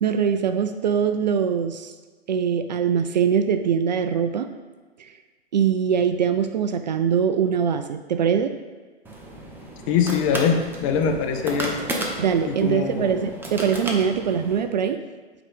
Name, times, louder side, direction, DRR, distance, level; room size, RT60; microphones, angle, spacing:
voice 1, 0.0-1.9 2.3-4.5 5.0-5.2 5.5-8.6 12.2-15.0, right 7 dB, 45° right, 9 dB, 0.4 m, -22 dB
sound 1, 9.0-14.6, right 1 dB, 5° right, 0.7 m, -33 dB
voice 2, 9.9-11.8 12.5-13.1, left 7 dB, 30° left, 4 dB, 0.8 m, -23 dB
8.3 x 3.9 x 5.1 m, 1.4 s
figure-of-eight pair, 115°, 32 cm